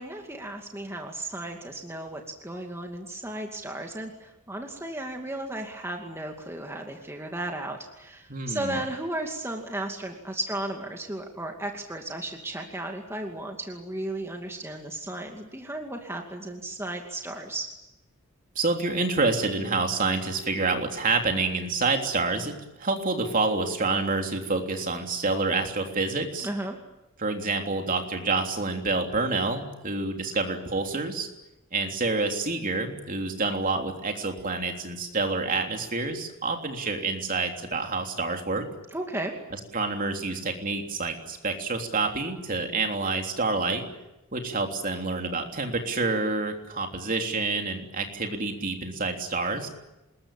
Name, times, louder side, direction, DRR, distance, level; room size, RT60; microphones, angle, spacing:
voice 1, 0.0-17.7 26.4-26.8 38.9-39.4, right 1 dB, 10° right, 2 dB, 2.4 m, -35 dB
voice 2, 8.3-8.8 18.5-26.5 27.2-31.3 31.7-38.7 39.7-43.8 44.3-49.7, right 3 dB, 40° right, 4 dB, 3.4 m, -28 dB
26.5 x 21.5 x 8.9 m, 0.96 s
head